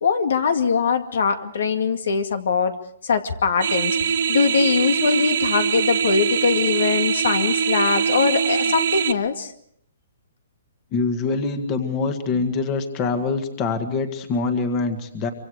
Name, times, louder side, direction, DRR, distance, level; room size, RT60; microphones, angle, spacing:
voice 1, 0.0-2.7 3.0-4.0 4.3-9.5, left 5 dB, 75° left, 7 dB, 2.2 m, -21 dB
sound 1, 3.6-9.1, right 7 dB, 60° right, 1.0 m, -22 dB
voice 2, 10.9-15.3, left 4 dB, 20° left, 8 dB, 1.8 m, -24 dB
25.5 x 25.0 x 4.9 m, 0.68 s
hypercardioid pair, 165°, 0 cm